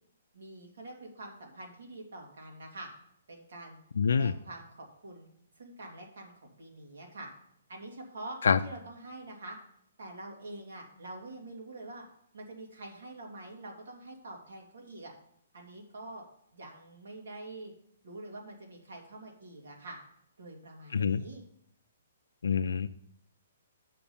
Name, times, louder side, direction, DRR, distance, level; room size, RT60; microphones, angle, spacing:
voice 1, 0.3-2.9 3.3-3.8 4.1-5.3 5.6-7.3 7.7-8.4 8.6-9.6 10.0-12.1 12.3-15.1 15.5-16.2 16.5-17.7 18.0-20.0 20.4-21.4, right 2 dB, 75° right, 0 dB, 2.5 m, -45 dB
voice 2, 4.0-4.3 8.4-8.6 20.9-21.2 22.4-22.9, left 6 dB, 85° left, 8 dB, 0.4 m, -25 dB
7.2 x 5.9 x 7.0 m, 0.71 s
hypercardioid pair, 175°, 0 cm